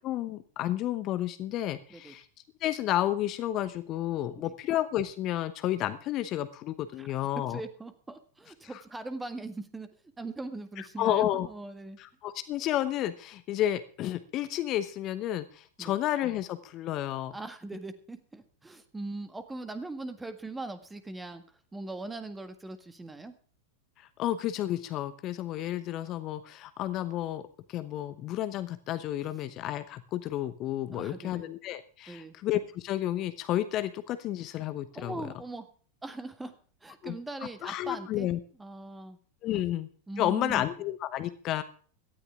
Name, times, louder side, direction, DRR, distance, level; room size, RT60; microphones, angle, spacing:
voice 1, 0.0-2.3 2.6-7.6 11.0-11.5 12.0-17.4 24.0-35.2 37.0-37.1 37.6-38.4 39.4-39.9 40.2-41.6, left 13 dB, 35° left, 12 dB, 0.9 m, -31 dB
voice 2, 7.5-9.9 10.2-12.0 15.8-15.9 17.3-21.4 21.7-23.3 30.9-31.5 32.1-32.4 34.9-35.7 36.0-36.5 36.8-38.3 38.6-39.2 39.5-39.6 40.1-40.6, right 2 dB, 10° right, 10 dB, 1.7 m, -40 dB
17.5 x 13.0 x 3.6 m, 0.42 s
figure-of-eight pair, 90°, 0 cm